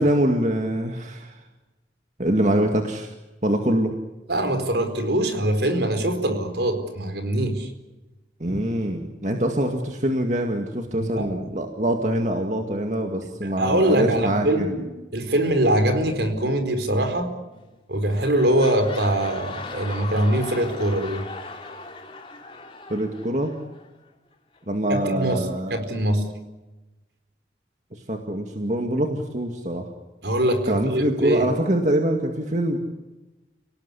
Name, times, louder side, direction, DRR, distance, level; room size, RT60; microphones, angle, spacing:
voice 1, 0.0-1.4 2.2-3.1 3.4-3.9 8.4-14.7 22.9-23.5 24.7-25.8 27.9-29.9 30.7-32.8, right 1 dB, 40° right, 4 dB, 2.2 m, -24 dB
voice 2, 4.3-7.7 8.5-8.6 10.9-11.5 13.4-14.9 15.1-17.3 17.9-21.2 24.9-26.2 30.2-31.5, right 1 dB, 70° right, 7 dB, 4.5 m, -23 dB
sound 1, 17.5-17.8 18.0-23.9 24.5-24.6, left 3 dB, 30° left, 3.1 m, -38 dB
29.5 x 18.5 x 8.5 m, 1.1 s
head